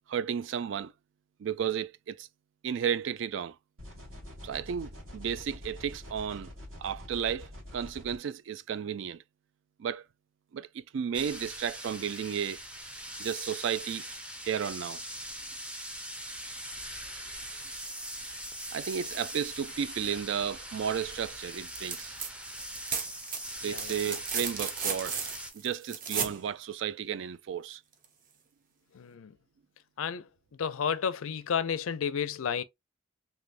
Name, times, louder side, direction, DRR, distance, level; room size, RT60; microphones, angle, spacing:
voice 1, 0.1-0.9 1.4-2.3 2.6-3.6 4.4-6.5 6.8-9.2 9.8-10.0 10.5-12.6 13.2-14.1 14.4-15.0 18.7-22.1 23.6-25.2 25.5-27.8, right 8 dB, 60° right, 0.3 m, -33 dB
sound 1, 3.8-8.2, left 1 dB, 85° right, 2.3 m, -46 dB
sound 2, 11.1-25.5, equal, 5° right, 0.5 m, -41 dB
sound 3, 21.7-22.3 22.6-26.4 28.0-28.1, right 6 dB, 40° right, 0.8 m, -34 dB
voice 2, 29.0-29.3 30.0-30.2 30.6-32.6, left 7 dB, 85° left, 0.5 m, -31 dB
3.3 x 2.9 x 2.4 m
head